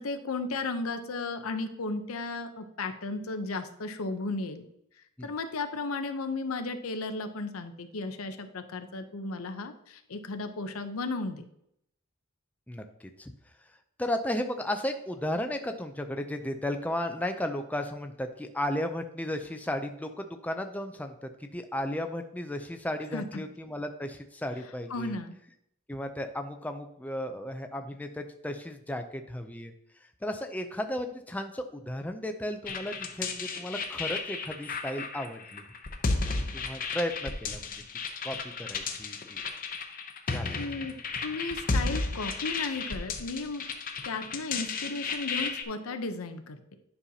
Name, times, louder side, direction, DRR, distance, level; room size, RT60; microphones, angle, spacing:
voice 1, 0.0-4.6 5.2-11.4 23.1-23.4 24.9-25.4 40.6-41.0 41.2-43.7 44.0-46.8, left 3 dB, 90° left, 8 dB, 0.7 m, -34 dB
voice 2, 12.7-13.3 14.0-25.2 25.9-29.7 30.2-35.6 36.3-37.8 38.2-39.4 40.3-40.6, left 1 dB, 5° left, 6 dB, 0.4 m, -34 dB
sound 1, 32.7-45.6, left 4 dB, 40° left, 0.7 m, -33 dB
9.8 x 5.5 x 2.8 m, 0.76 s
head